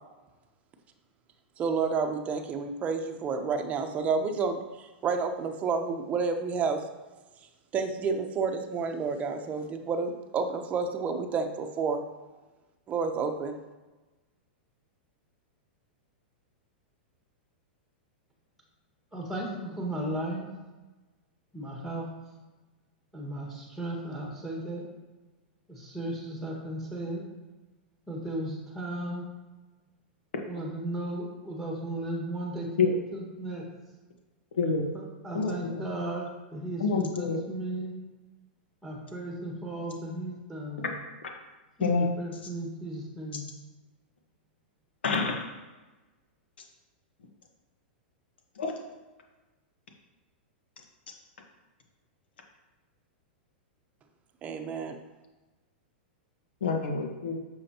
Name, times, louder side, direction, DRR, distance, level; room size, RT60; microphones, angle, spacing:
voice 1, 1.6-6.8 7.7-12.0 12.9-13.6 54.4-55.0, right 5 dB, 25° right, 5 dB, 0.8 m, -30 dB
voice 2, 19.1-20.5 21.5-22.1 23.1-24.9 25.7-27.2 28.1-29.3 30.5-32.7 33.1-33.7 34.9-37.9 38.8-40.9 41.8-43.5, right 1 dB, ahead, -1 dB, 1.6 m, -35 dB
voice 3, 34.6-34.9 35.3-35.8 36.8-37.4 41.8-42.1 45.0-45.5 48.6-48.7 56.6-57.4, left 4 dB, 90° left, 2 dB, 1.3 m, -27 dB
8.6 x 6.3 x 2.9 m, 1.2 s
hypercardioid pair, 135°, 6 cm